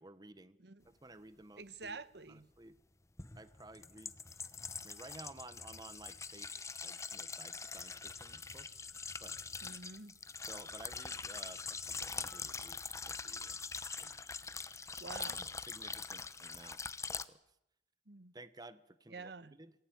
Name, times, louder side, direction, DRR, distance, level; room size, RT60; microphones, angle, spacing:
voice 1, 0.0-0.6 0.8-2.0 2.3-2.8 3.4-4.4 4.8-6.5 6.8-8.8 9.2-9.4 10.5-12.8 13.1-13.6 14.0-14.1 15.7-16.8 17.1-17.4 18.3-19.7, right 2 dB, 20° right, 1.2 m, -54 dB
voice 2, 1.6-2.5 9.6-10.2 15.0-15.5 18.1-18.3 19.1-19.6, right 4 dB, 65° right, 1.3 m, -48 dB
sound 1, 1.8-1.9 3.2-17.2, left 5 dB, 15° left, 0.9 m, -44 dB
27.5 x 19.5 x 9.3 m
head